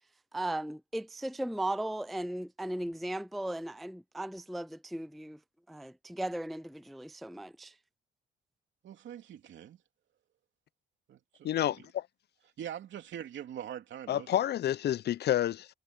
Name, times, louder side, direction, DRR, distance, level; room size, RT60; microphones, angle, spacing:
voice 1, 0.3-5.4 5.7-7.7, right 1 dB, ahead, 0.4 m, -37 dB
voice 2, 8.8-9.8 11.1-11.8 12.6-14.3, right 10 dB, 70° right, 3.1 m, -43 dB
voice 3, 11.4-12.1 14.1-15.7, left 12 dB, 55° left, 0.5 m, -29 dB
cardioid pair, 90°, 20 cm